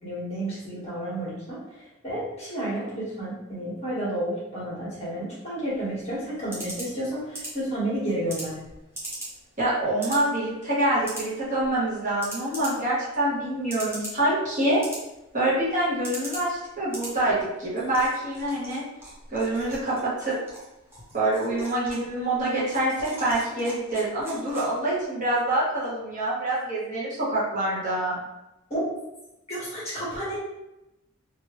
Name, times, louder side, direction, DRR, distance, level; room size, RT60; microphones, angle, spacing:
voice 1, 0.0-1.6 2.0-8.5 28.7-28.8 29.5-30.4, right 1 dB, 30° left, -8 dB, 1.3 m, -31 dB
sound 1, 5.7-25.0, right 1 dB, 10° right, 0.7 m, -42 dB
voice 2, 9.6-14.8 15.3-18.8 19.3-20.3 21.1-28.2, right 1 dB, 35° right, -9 dB, 1.1 m, -26 dB
3.0 x 2.6 x 3.0 m, 0.93 s
head